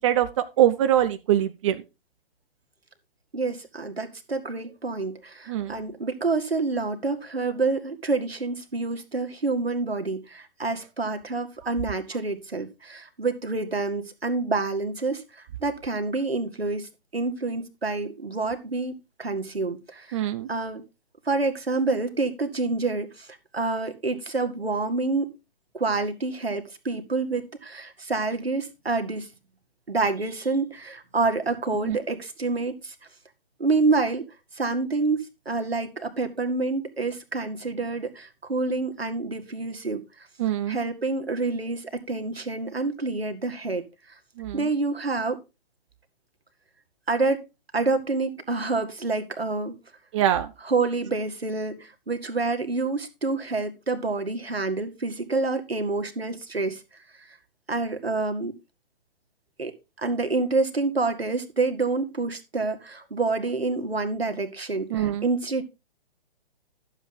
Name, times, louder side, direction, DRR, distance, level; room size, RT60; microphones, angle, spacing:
voice 1, 0.0-1.8 5.5-5.8 20.1-20.5 31.8-32.0 40.4-40.8 44.4-44.7 50.1-50.5 64.9-65.3, right 11 dB, 30° right, 9 dB, 0.8 m, -23 dB
voice 2, 3.3-20.2 20.5-20.8 21.3-23.3 23.5-25.4 25.7-29.3 29.9-32.9 33.6-34.3 34.5-40.0 40.7-43.8 44.5-45.4 47.1-47.4 47.7-49.8 50.6-56.8 57.7-58.6 59.6-59.7 60.0-65.6, right 3 dB, 85° right, 6 dB, 2.0 m, -27 dB
12.0 x 7.4 x 3.8 m, 0.27 s
figure-of-eight pair, 130°, 30 cm